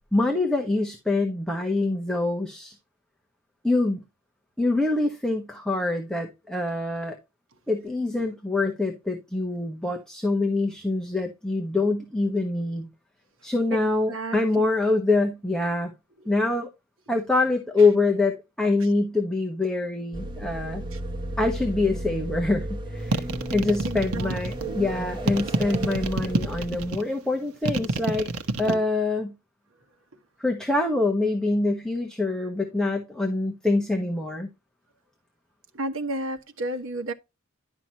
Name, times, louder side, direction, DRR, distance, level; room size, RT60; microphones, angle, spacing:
voice 1, 0.1-2.8 3.6-4.0 4.6-7.2 7.7-12.9 13.4-15.9 16.3-16.7 17.1-20.8 21.4-23.2 23.5-28.3 28.6-29.3 30.4-34.5, left 2 dB, 5° left, 1.2 m, -25 dB
sound 1, 20.1-26.9, right 1 dB, 20° right, 1.3 m, -34 dB
sound 2, 23.1-24.7 25.3-27.0 27.6-28.7, right 2 dB, 85° right, 1.0 m, -26 dB
voice 2, 23.8-24.3 24.6-24.9 28.6-28.8 35.7-37.1, right 2 dB, 70° right, 1.4 m, -32 dB
11.5 x 5.9 x 2.9 m
head